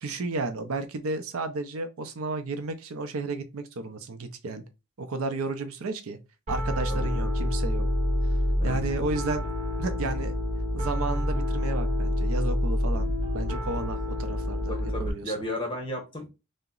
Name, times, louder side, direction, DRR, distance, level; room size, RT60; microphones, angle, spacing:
voice 1, 0.0-4.6 5.0-6.2 6.5-7.9 8.6-9.4 9.8-10.3 10.7-14.7 15.0-15.3, right 3 dB, 75° right, 0.5 m, -32 dB
Piano, 6.5-15.1, left 1 dB, 30° right, 1.4 m, -27 dB
voice 2, 6.9-7.3 8.6-8.8 14.7-16.4, left 1 dB, 20° left, 0.9 m, -34 dB
2.8 x 2.1 x 3.7 m
head